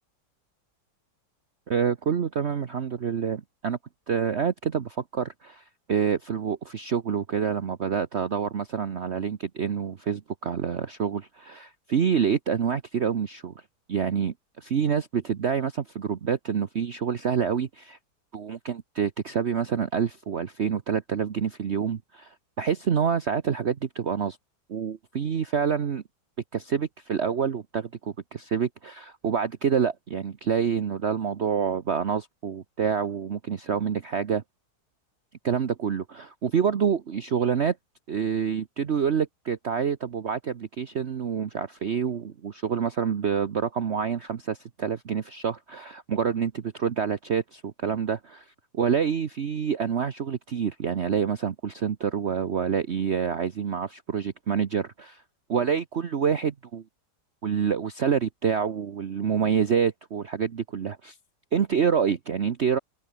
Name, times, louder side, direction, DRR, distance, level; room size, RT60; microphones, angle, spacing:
voice 1, 1.7-3.8 4.1-13.5 13.9-18.0 18.3-24.4 24.7-26.0 26.5-34.4 35.4-37.8 38.1-48.4 48.7-55.2 55.5-56.8 57.4-61.1 61.5-62.8, right 7 dB, 45° right, 1.2 m, -27 dB
open air
omnidirectional pair, 1.8 m